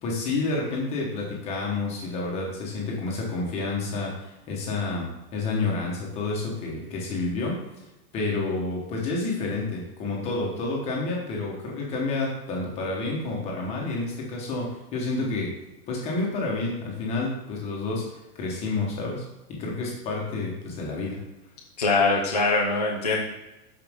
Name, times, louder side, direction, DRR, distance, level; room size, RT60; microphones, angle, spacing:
voice 1, 0.0-7.6 8.1-15.5 15.9-21.2, left 3 dB, 15° left, -2 dB, 1.2 m, -29 dB
voice 2, 21.8-23.2, left 3 dB, 30° left, -3 dB, 0.3 m, -22 dB
12.5 x 4.9 x 3.6 m, 0.97 s
supercardioid pair, 180°, 47 cm